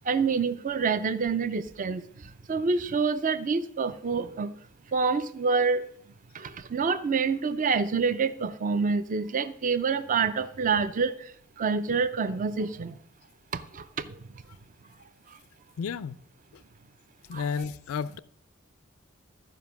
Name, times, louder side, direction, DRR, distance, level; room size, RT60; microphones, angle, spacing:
voice 1, 0.1-2.0 2.5-4.5 4.9-5.9 6.3-11.3 11.6-13.0 13.5-14.1 17.3-17.5, right 5 dB, 40° right, 12 dB, 0.5 m, -27 dB
voice 2, 15.8-16.2 17.3-18.2, left 6 dB, 75° left, 18 dB, 0.4 m, -32 dB
13.0 x 5.1 x 5.8 m, 0.66 s
head